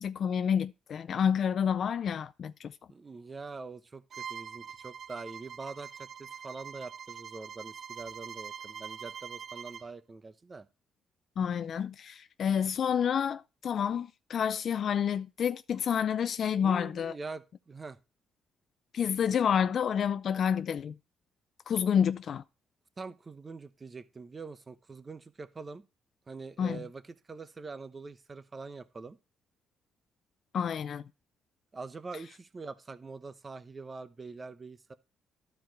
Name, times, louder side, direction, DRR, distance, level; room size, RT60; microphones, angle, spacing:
voice 1, 0.0-2.7 11.4-17.1 18.9-20.9 21.7-22.4 26.6-26.8 30.5-31.0, left 8 dB, 60° left, 0.4 m, -29 dB
voice 2, 2.9-10.7 16.6-18.0 23.0-25.8 26.3-29.2 31.7-34.9, right 4 dB, 30° right, 0.8 m, -44 dB
Bowed string instrument, 4.1-9.9, right 7 dB, 55° right, 0.4 m, -44 dB
12.5 x 4.7 x 4.6 m
cardioid pair, 90°, 0 cm